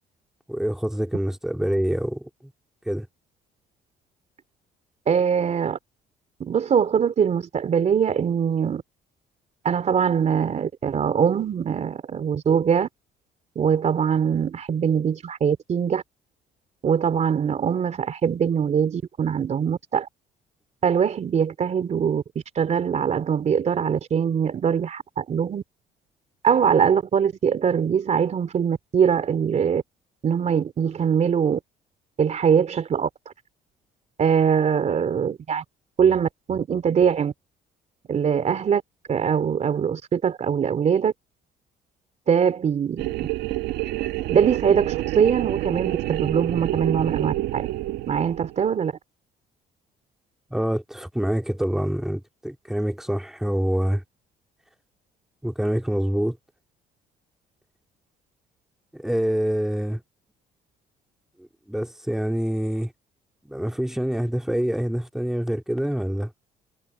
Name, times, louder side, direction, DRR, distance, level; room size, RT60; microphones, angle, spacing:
voice 1, 0.5-2.3 2.9-3.1 50.5-54.0 55.4-56.4 58.9-60.0 61.4-62.9 63.4-66.3, equal, ahead, 2.7 m, -26 dB
voice 2, 5.1-5.8 6.4-8.8 9.6-12.9 13.5-16.0 16.8-20.1 20.8-22.2 22.5-25.6 26.4-29.8 30.2-31.6 32.2-33.1 34.2-35.6 36.0-37.3 38.1-38.8 39.1-41.1 42.3-43.1 44.3-47.7 48.1-48.9, right 7 dB, 40° right, 3.0 m, -22 dB
sound 1, 43.0-48.7, right 16 dB, 80° right, 1.5 m, -28 dB
cardioid pair, 110°, 17 cm